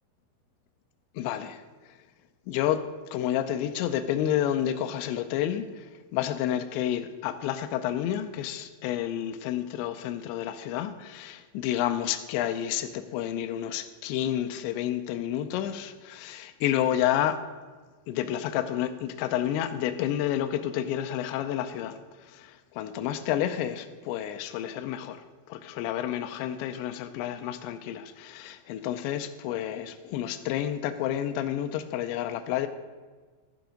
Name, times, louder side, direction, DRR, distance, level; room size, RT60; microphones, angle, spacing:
voice 1, 1.2-1.6 2.5-2.8 3.1-17.4 18.1-25.2 25.5-32.7, left 11 dB, 85° left, 8 dB, 2.8 m, -30 dB
12.0 x 7.1 x 5.1 m, 1.4 s
omnidirectional pair, 5.3 m